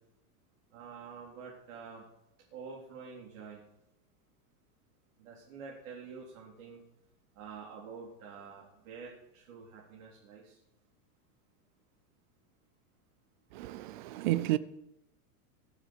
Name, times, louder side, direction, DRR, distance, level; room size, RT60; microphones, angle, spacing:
voice 1, 0.7-2.0 2.5-3.6 5.2-6.8 7.4-10.6, right 5 dB, 65° right, 4.0 m, -47 dB
voice 2, 13.5-14.6, right 15 dB, 35° right, 0.5 m, -31 dB
21.0 x 7.3 x 6.6 m
supercardioid pair, 175°, 43 cm